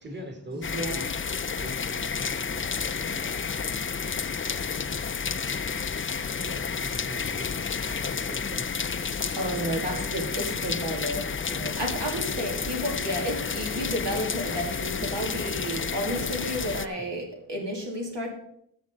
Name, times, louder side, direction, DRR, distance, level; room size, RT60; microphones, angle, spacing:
voice 1, 0.0-1.1 1.5-8.7 9.2-9.5 12.2-12.5 16.9-17.1, equal, 25° right, 3 dB, 2.0 m, -44 dB
voice 2, 0.5-1.0 9.4-18.3, equal, 80° right, 0 dB, 2.7 m, -32 dB
sound 1, 0.6-16.9, left 6 dB, 30° left, 0.4 m, -31 dB
13.5 x 7.3 x 3.9 m, 0.72 s
wide cardioid pair, 60°, 42 cm